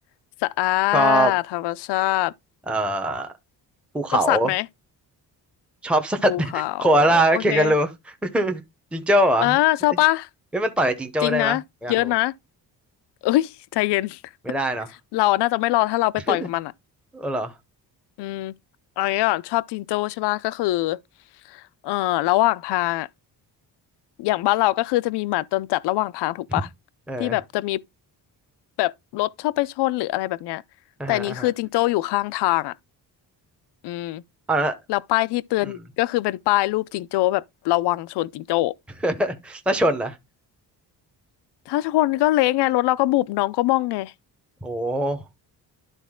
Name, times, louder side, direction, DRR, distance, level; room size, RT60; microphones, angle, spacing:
voice 1, 0.4-2.3 4.3-4.7 6.3-7.7 9.4-10.3 11.2-11.6 11.9-12.3 13.2-14.2 15.1-16.7 18.2-18.5 19.0-21.0 21.5-23.1 24.2-26.7 27.2-27.8 28.8-30.6 31.1-32.7 33.8-34.2 34.9-38.7 41.7-44.1, left 17 dB, 85° left, 0.5 m, -23 dB
voice 2, 0.9-1.3 2.7-3.3 3.9-4.5 5.8-8.6 8.9-9.6 10.5-11.9 14.5-14.9 16.3-16.5 17.1-17.5 27.1-27.4 31.0-31.5 34.5-34.7 39.0-40.2 44.6-45.2, right 1 dB, 5° right, 0.8 m, -22 dB
11.5 x 4.1 x 3.6 m
cardioid pair, 130°, 40 cm